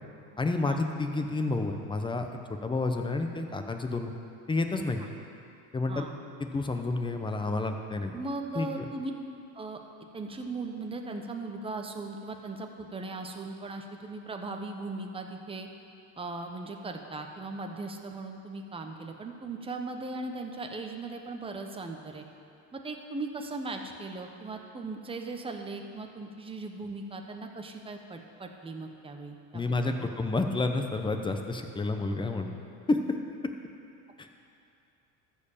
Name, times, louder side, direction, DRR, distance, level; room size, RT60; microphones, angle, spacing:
voice 1, 0.4-2.3 2.6-4.1 4.5-5.0 5.7-6.1 6.4-8.2 8.5-8.7 29.5-32.6 32.9-33.0 34.2-34.3, left 3 dB, 10° left, 5 dB, 0.7 m, -30 dB
voice 2, 8.1-9.1 9.5-9.8 10.1-15.7 16.2-22.3 22.7-29.9, right 3 dB, 15° right, 3 dB, 0.9 m, -38 dB
13.5 x 4.6 x 7.2 m, 2.6 s
supercardioid pair, 115°, 39 cm